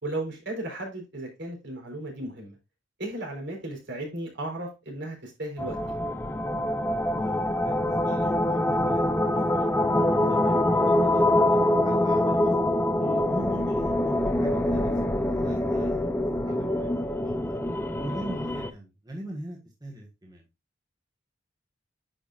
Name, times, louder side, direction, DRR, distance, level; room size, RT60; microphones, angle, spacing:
voice 1, 0.0-2.6 3.0-5.8 13.0-13.3, right 1 dB, 65° right, 1 dB, 4.0 m, -35 dB
sound 1, 5.6-18.7, left 1 dB, 10° left, 0.6 m, -25 dB
voice 2, 7.1-11.6 11.8-12.7 13.3-14.9 15.2-16.1 16.4-16.9 17.2-17.6 18.0-20.4, right 1 dB, 20° right, -1 dB, 1.6 m, -41 dB
9.7 x 5.8 x 2.5 m, 0.25 s
head